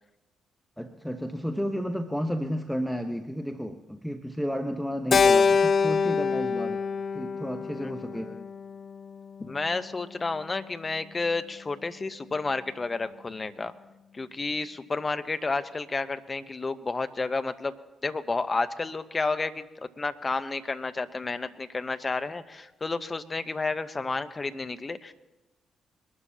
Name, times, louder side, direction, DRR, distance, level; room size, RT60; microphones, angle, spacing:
voice 1, 0.8-6.8 7.1-8.4, equal, 5° left, 6 dB, 1.1 m, -32 dB
Keyboard (musical), 5.1-9.5, left 5 dB, 55° left, 0.4 m, -25 dB
voice 2, 7.8-8.5 9.4-13.7 14.1-17.7 18.0-25.1, left 3 dB, 35° left, 10 dB, 1.0 m, -31 dB
23.0 x 12.5 x 2.9 m, 1.1 s
hypercardioid pair, 40°, 0 cm